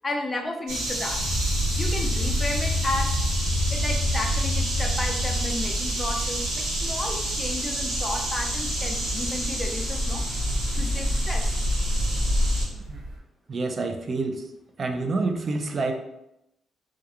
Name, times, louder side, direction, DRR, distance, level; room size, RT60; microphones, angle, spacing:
voice 1, 0.0-1.3 1.8-3.2 3.7-10.2 10.7-11.6, left 2 dB, 25° left, 2 dB, 0.5 m, -33 dB
sound 1, 0.7-12.6, equal, 85° right, 0.9 m, -28 dB
sound 2, 1.2-13.2, equal, 85° left, 0.5 m, -30 dB
voice 2, 12.7-13.0 13.5-14.4 14.8-15.9, right 3 dB, 50° right, 5 dB, 0.4 m, -28 dB
2.4 x 2.2 x 2.8 m, 0.84 s
cardioid pair, 65°, 0 cm